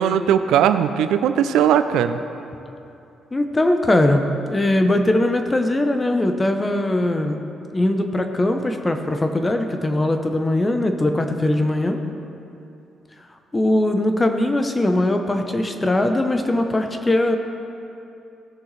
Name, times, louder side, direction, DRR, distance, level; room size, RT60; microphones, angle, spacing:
voice 1, 0.0-2.2, right 9 dB, 85° right, 10 dB, 0.4 m, -18 dB
voice 2, 3.3-4.2 4.5-7.4 7.7-12.0 13.5-17.4, left 1 dB, 20° left, 5 dB, 0.8 m, -20 dB
17.5 x 6.2 x 3.2 m, 2.7 s
cardioid pair, 90°, 0 cm